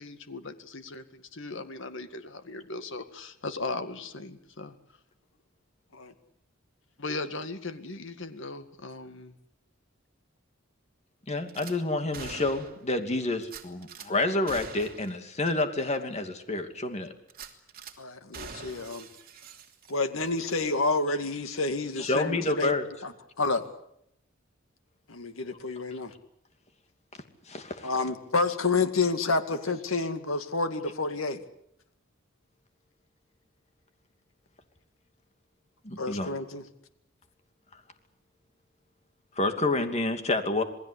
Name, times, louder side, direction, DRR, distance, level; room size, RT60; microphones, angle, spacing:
voice 1, 0.0-4.8 7.0-9.4, left 3 dB, 65° left, 10 dB, 2.0 m, -38 dB
voice 2, 11.3-17.1 22.0-22.8 27.5-27.9 35.8-36.3 39.4-40.6, left 2 dB, 35° left, 7 dB, 2.7 m, -29 dB
Gunshot gunfire / Glass, 11.5-11.7 12.1-12.9 13.4-14.1 14.5-15.1 15.4-15.5 16.0-16.1 17.3-17.9 18.3-20.1 20.5-20.6, right 5 dB, 50° right, 2.9 m, -44 dB
voice 3, 18.0-19.1 19.9-22.7 23.0-23.1 23.4-23.6 25.1-26.1 27.8-31.4 36.0-36.6, left 3 dB, 85° left, 8 dB, 2.2 m, -29 dB
28.0 x 20.0 x 8.4 m, 0.76 s
head